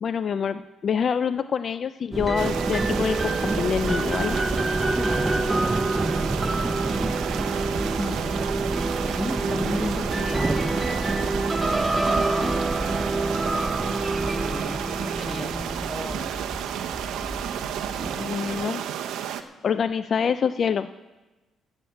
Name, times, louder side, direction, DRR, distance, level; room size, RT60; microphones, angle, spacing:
voice 1, 0.0-4.4 18.2-18.8 19.4-20.9, left 7 dB, 50° left, 12 dB, 0.4 m, -26 dB
sound 1, 2.1-18.6, right 2 dB, 15° right, 0.4 m, -27 dB
sound 2, 2.4-19.4, right 9 dB, 85° right, 0.7 m, -31 dB
voice 2, 4.8-5.6 8.0-8.8 9.0-10.7 11.7-12.6 14.3-16.4, left 2 dB, 15° left, 8 dB, 1.2 m, -35 dB
12.5 x 8.1 x 7.9 m, 1.2 s
cardioid pair, 90°, 0 cm